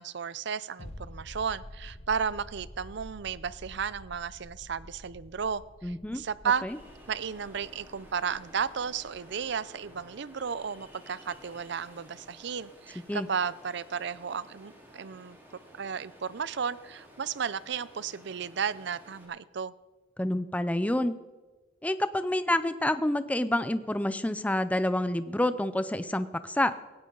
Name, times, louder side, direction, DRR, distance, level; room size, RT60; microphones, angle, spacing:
voice 1, 0.0-6.7 7.1-15.4 15.8-19.7, right 6 dB, 60° right, 18 dB, 0.5 m, -33 dB
sound 1, 0.8-12.1 12.4-12.5, left 1 dB, 35° left, 1.2 m, -49 dB
voice 2, 5.8-6.2 6.6-6.8 13.1-13.3 20.2-21.1 21.8-26.7, left 1 dB, 5° left, 12 dB, 0.5 m, -28 dB
Ocean, 6.7-19.2, equal, 10° right, 3.7 m, -54 dB
17.5 x 17.0 x 3.9 m, 1.2 s
head